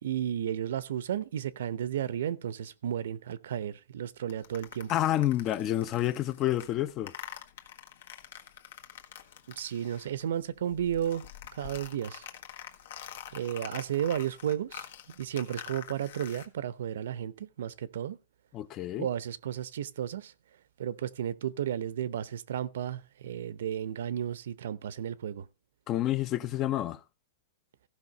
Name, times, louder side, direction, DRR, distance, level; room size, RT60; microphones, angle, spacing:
voice 1, 0.0-4.9 9.6-11.2 11.5-12.3 13.3-14.9 15.2-18.2 19.0-20.3 20.8-25.5, right 10 dB, 75° right, 0.7 m, -33 dB
sound 1, 4.3-10.3 10.6-16.5, left 10 dB, 70° left, 1.6 m, -46 dB
voice 2, 4.9-7.1 18.5-19.1 25.9-27.0, left 13 dB, 25° left, 0.6 m, -29 dB
15.0 x 5.6 x 5.3 m
supercardioid pair, 160°, 0 cm